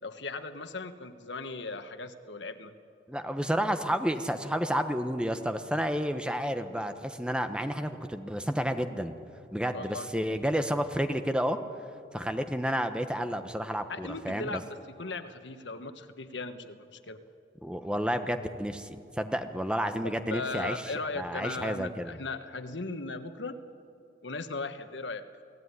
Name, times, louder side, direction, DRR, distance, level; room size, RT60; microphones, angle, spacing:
voice 1, 0.0-2.7 9.7-10.1 13.9-17.2 20.0-23.6 24.2-25.2, left 3 dB, 85° left, 9 dB, 1.3 m, -38 dB
voice 2, 3.1-9.1 9.5-11.6 12.1-14.6 17.6-18.9 19.2-20.8 21.2-22.2, equal, 5° right, 8 dB, 1.0 m, -30 dB
28.5 x 18.0 x 9.7 m, 2.6 s
head